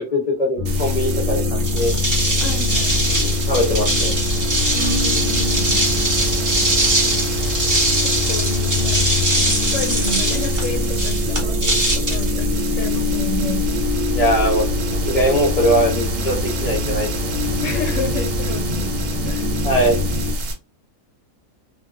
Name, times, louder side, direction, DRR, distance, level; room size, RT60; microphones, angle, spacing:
voice 1, 0.0-2.0 3.1-4.1 14.1-14.7 15.0-17.4 19.6-20.0, equal, 35° left, 0.6 m, -21 dB
sound 1, 0.6-20.3, left 3 dB, 65° right, 1.0 m, -25 dB
sound 2, 0.7-20.5, right 1 dB, 85° right, 1.2 m, -26 dB
sound 3, 1.5-13.0, right 1 dB, 20° right, 0.5 m, -22 dB
voice 2, 2.4-3.0 4.7-5.8 8.0-9.1 9.5-13.7 17.6-19.0 19.2-19.5, left 1 dB, 65° left, 0.9 m, -30 dB
2.7 x 2.3 x 2.4 m
omnidirectional pair, 1.5 m